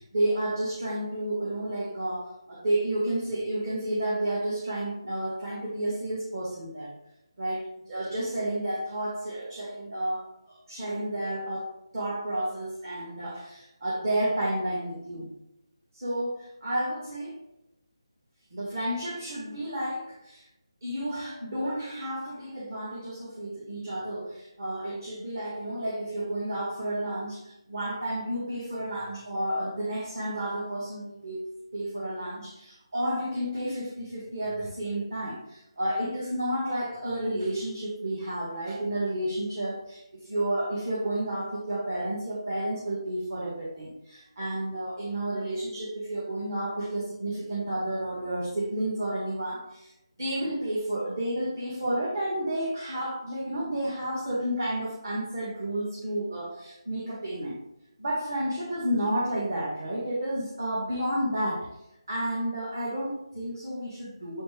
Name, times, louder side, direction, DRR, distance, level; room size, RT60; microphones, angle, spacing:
voice 1, 0.0-6.9 7.4-15.3 15.9-17.4 18.5-20.5 20.8-31.4 31.7-49.9 50.2-57.6 58.0-61.7 62.1-64.4, right 1 dB, 45° right, -5 dB, 1.6 m, -31 dB
6.7 x 4.3 x 3.3 m, 0.87 s
figure-of-eight pair, 175°, 3 cm